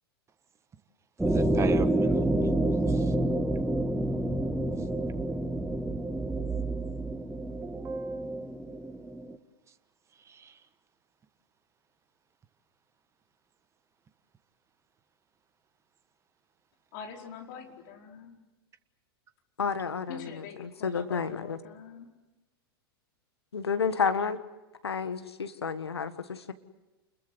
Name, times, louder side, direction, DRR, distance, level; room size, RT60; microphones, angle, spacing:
sound 1, 1.2-9.3, right 1 dB, 5° right, 1.5 m, -28 dB
voice 1, 1.3-3.1 4.8-4.9 7.5-8.9 10.2-10.6, right 4 dB, 20° right, 11 dB, 1.5 m, -39 dB
voice 2, 16.9-18.4 20.1-22.1, left 7 dB, 55° left, 2 dB, 4.6 m, -44 dB
voice 3, 19.6-21.6 23.5-24.4 24.8-26.5, left 6 dB, 85° left, 11 dB, 1.6 m, -31 dB
29.5 x 21.5 x 8.0 m, 1.1 s
hypercardioid pair, 100°, 13 cm